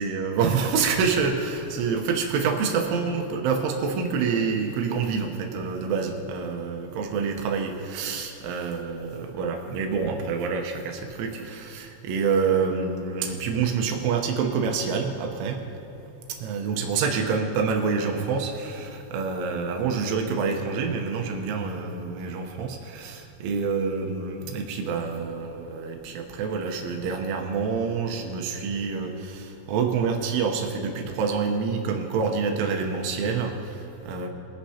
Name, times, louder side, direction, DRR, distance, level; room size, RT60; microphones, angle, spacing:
voice 1, 0.0-15.6 16.3-34.3, right 5 dB, 80° right, 3 dB, 3.3 m, -27 dB
23.5 x 9.7 x 2.8 m, 2.8 s
omnidirectional pair, 5.8 m